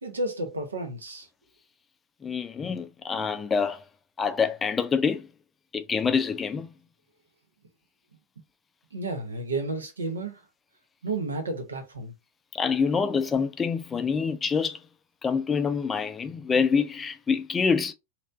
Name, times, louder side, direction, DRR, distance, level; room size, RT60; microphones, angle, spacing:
voice 1, 0.0-1.3 8.9-10.4 11.0-12.1, right 2 dB, 75° right, 0.9 m, -32 dB
voice 2, 2.2-3.8 4.2-5.3 5.7-6.7 12.5-14.8 15.2-17.9, left 5 dB, 20° left, 0.4 m, -26 dB
3.2 x 2.9 x 2.5 m
figure-of-eight pair, 90°, 0 cm